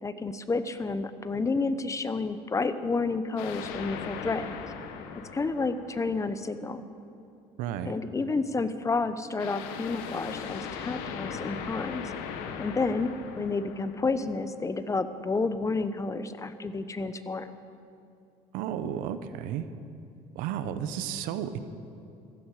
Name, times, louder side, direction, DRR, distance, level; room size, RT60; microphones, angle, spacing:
voice 1, 0.0-4.6 5.3-6.8 7.9-12.1 12.6-17.5, left 3 dB, 20° left, 12 dB, 0.8 m, -30 dB
sound 1, 3.4-6.5 9.4-14.6, left 7 dB, 85° left, 1.2 m, -39 dB
voice 2, 7.6-7.9 18.5-19.7 20.3-21.6, right 9 dB, 80° right, 11 dB, 0.9 m, -32 dB
15.5 x 15.0 x 4.9 m, 2.6 s
supercardioid pair, 90°, 14 cm